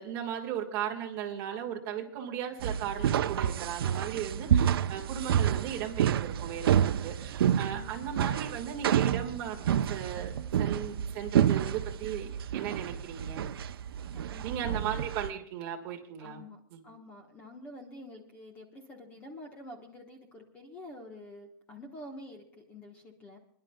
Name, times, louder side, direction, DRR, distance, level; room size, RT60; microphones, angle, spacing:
voice 1, 0.0-10.3 10.6-13.5 14.4-16.4 16.7-16.8, right 9 dB, 25° right, 0 dB, 1.6 m, -37 dB
sound 1, 2.6-15.3, right 9 dB, 80° right, 0.6 m, -29 dB
voice 2, 7.7-8.0 14.1-14.8 16.2-23.4, left 1 dB, 10° left, 3 dB, 1.1 m, -48 dB
27.0 x 11.0 x 2.3 m, 0.66 s
supercardioid pair, 180°, 12 cm